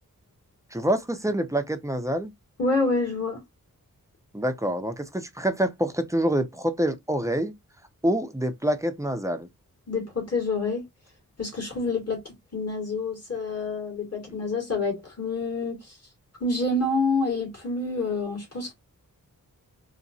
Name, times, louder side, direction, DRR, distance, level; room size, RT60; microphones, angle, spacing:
voice 1, 0.7-2.3 4.3-7.5 8.0-9.5, right 1 dB, 10° right, 0.6 m, -26 dB
voice 2, 2.6-3.4 9.9-10.8 11.4-15.9 16.4-18.7, left 3 dB, 45° left, 2.6 m, -27 dB
4.1 x 2.8 x 2.7 m
wide cardioid pair, 90°, 35 cm